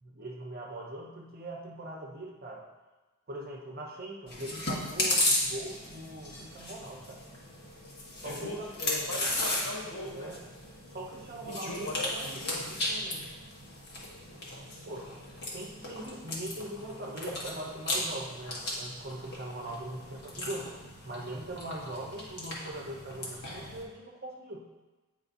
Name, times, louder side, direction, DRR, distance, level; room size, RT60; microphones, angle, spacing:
voice 1, 0.0-2.7 3.3-7.2 8.2-8.7 10.1-10.4 10.9-13.3 14.9-15.1 15.5-24.7, right 1 dB, 45° right, -1 dB, 0.9 m, -41 dB
Chewing mastication, 4.3-23.8, left 1 dB, 45° left, 1.4 m, -36 dB
voice 2, 8.2-10.3 11.4-12.6, left 1 dB, 80° left, -5 dB, 2.1 m, -39 dB
8.7 x 5.1 x 2.7 m, 1.2 s
head